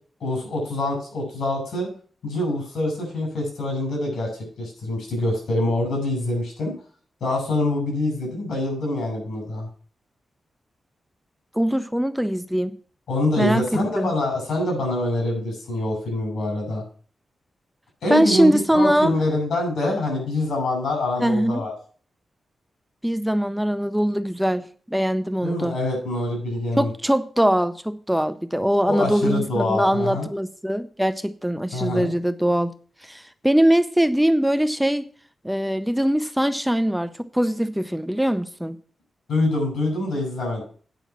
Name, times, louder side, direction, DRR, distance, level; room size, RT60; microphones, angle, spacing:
voice 1, 0.2-1.9 2.2-4.3 4.6-6.7 7.2-9.7 13.1-16.8 18.0-21.7 25.4-26.9 28.8-30.3 31.7-32.1 39.3-40.6, left 1 dB, 80° left, 2 dB, 6.0 m, -25 dB
voice 2, 11.5-12.7 13.4-14.1 18.1-19.1 21.2-21.6 23.0-25.7 26.8-32.7 33.0-35.1 35.4-38.8, equal, 5° right, 12 dB, 0.5 m, -22 dB
9.2 x 5.7 x 7.2 m, 0.43 s
wide cardioid pair, 115°, 0 cm